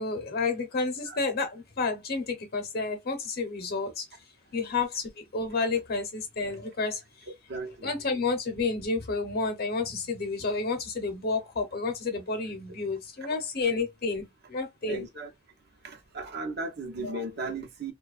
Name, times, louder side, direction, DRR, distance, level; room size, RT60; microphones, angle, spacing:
voice 1, 0.0-4.1 4.5-7.0 7.8-15.0 17.0-17.2, left 4 dB, 55° left, 0.8 m, -30 dB
voice 2, 7.5-7.9 14.8-15.3 15.8-17.9, right 2 dB, 55° right, 0.7 m, -36 dB
2.5 x 2.3 x 2.3 m
head